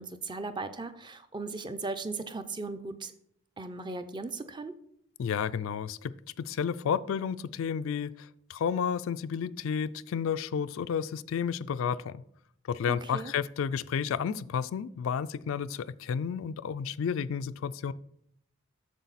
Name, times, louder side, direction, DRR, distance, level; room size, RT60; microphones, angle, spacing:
voice 1, 0.0-3.1 3.6-4.7 12.9-13.3, right 3 dB, 20° right, 0.4 m, -37 dB
voice 2, 5.2-12.2 12.7-17.9, left 7 dB, 70° left, 0.3 m, -31 dB
8.2 x 6.6 x 4.0 m
head